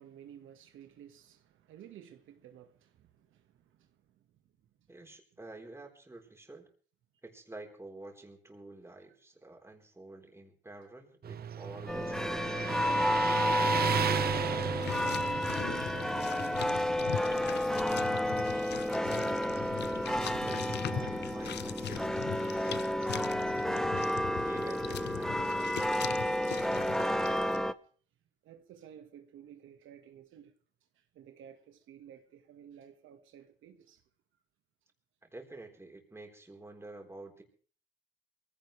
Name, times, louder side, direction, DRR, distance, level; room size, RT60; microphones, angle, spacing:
voice 1, 0.0-4.4 8.9-9.1 15.4-18.9 28.4-30.5 30.9-34.0, right 9 dB, 80° right, 1.7 m, -53 dB
voice 2, 4.9-6.7 7.2-13.4 19.9-23.9 24.4-27.6 35.2-37.4, right 2 dB, 15° right, 4.1 m, -49 dB
Motorcycle, 11.2-23.9, right 8 dB, 50° right, 0.9 m, -38 dB
sound 1, 11.9-27.7, left 1 dB, ahead, 0.8 m, -31 dB
sound 2, 14.6-27.6, left 10 dB, 60° left, 0.7 m, -41 dB
22.5 x 16.0 x 3.3 m
cardioid pair, 90°, 20 cm